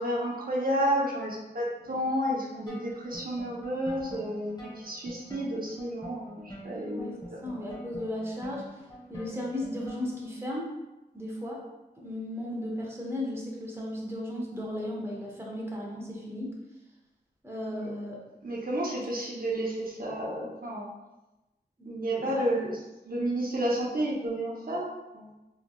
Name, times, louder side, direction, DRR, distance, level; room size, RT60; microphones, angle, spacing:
voice 1, 0.0-7.4 17.7-17.9 18.4-20.9 21.9-22.8 23.1-25.3, right 1 dB, 55° right, -5 dB, 0.8 m, -31 dB
sound 1, 2.7-10.3, equal, 25° left, 1.4 m, -46 dB
voice 2, 6.9-8.8 9.1-10.8 11.1-11.6 12.0-16.6 17.4-18.2 21.8-22.5, left 1 dB, 15° right, -3 dB, 0.9 m, -36 dB
3.7 x 3.3 x 2.3 m, 1.0 s
wide cardioid pair, 50°, 17 cm